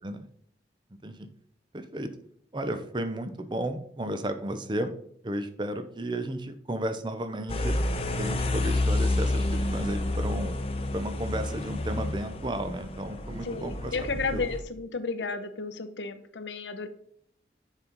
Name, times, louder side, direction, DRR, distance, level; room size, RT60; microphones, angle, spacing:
voice 1, 1.7-2.1 2.5-4.9 5.2-7.8 8.2-10.6 10.9-13.9 14.3-14.4, right 1 dB, 25° right, 9 dB, 0.6 m, -33 dB
sound 1, 7.5-14.6, left 2 dB, 30° left, 0.7 m, -29 dB
voice 2, 13.4-16.9, left 4 dB, 85° left, 10 dB, 0.8 m, -33 dB
7.2 x 5.2 x 4.0 m, 0.66 s
head